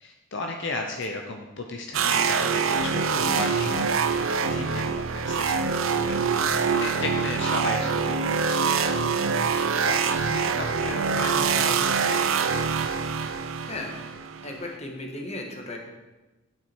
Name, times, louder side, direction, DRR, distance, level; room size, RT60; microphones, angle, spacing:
voice 1, 0.0-6.2 6.7-9.0 9.5-12.2, left 2 dB, 60° left, 3 dB, 0.7 m, -35 dB
sound 1, 1.9-14.7, right 5 dB, 85° right, 0.6 m, -25 dB
voice 2, 14.4-15.8, left 2 dB, 35° left, 2 dB, 1.4 m, -36 dB
9.3 x 8.0 x 4.5 m, 1.1 s
head